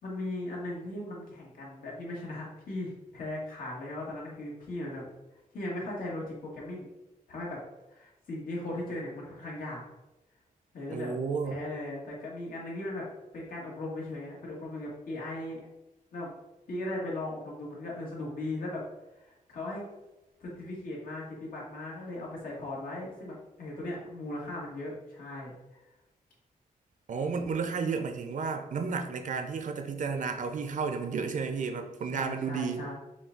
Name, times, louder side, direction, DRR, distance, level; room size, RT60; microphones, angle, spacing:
voice 1, 0.0-5.0 5.5-6.9 7.3-7.6 7.9-9.8 10.7-11.1 11.4-13.1 13.3-15.6 16.1-16.3 16.7-18.8 19.1-19.8 20.4-25.8 32.1-32.9, left 1 dB, 85° left, -4 dB, 1.6 m, -38 dB
voice 2, 10.9-11.6 27.1-32.8, right 5 dB, 65° right, 6 dB, 0.6 m, -32 dB
5.8 x 2.3 x 3.8 m, 0.96 s
wide cardioid pair, 125°, 14 cm